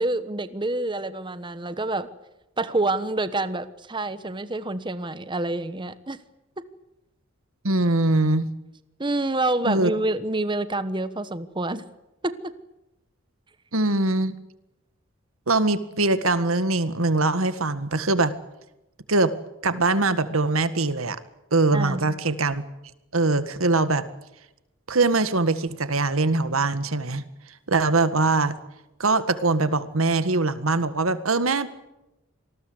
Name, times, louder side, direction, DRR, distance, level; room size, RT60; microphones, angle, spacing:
voice 1, 0.0-2.1 2.6-6.2 6.6-6.7 9.0-11.8 12.2-12.5 21.7-22.1, right 2 dB, 25° right, 13 dB, 1.2 m, -27 dB
voice 2, 7.6-8.5 9.6-9.9 13.7-14.3 15.5-18.3 19.1-19.3 19.6-21.2 21.5-22.6 23.1-24.1 24.9-27.2 27.7-28.6 29.0-31.7, right 3 dB, 90° right, 12 dB, 1.8 m, -22 dB
26.5 x 20.0 x 8.0 m, 0.93 s
head